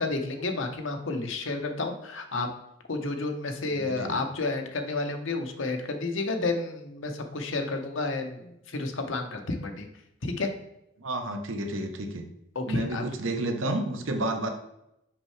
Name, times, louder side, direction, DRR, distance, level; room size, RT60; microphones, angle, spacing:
voice 1, 0.0-2.5 2.9-9.9 10.2-10.5 12.5-13.1, left 3 dB, 85° left, 4 dB, 0.8 m, -31 dB
voice 2, 3.7-4.2 11.0-12.3 12.7-14.5, right 1 dB, 85° right, 5 dB, 0.9 m, -31 dB
5.9 x 5.4 x 3.2 m, 0.82 s
head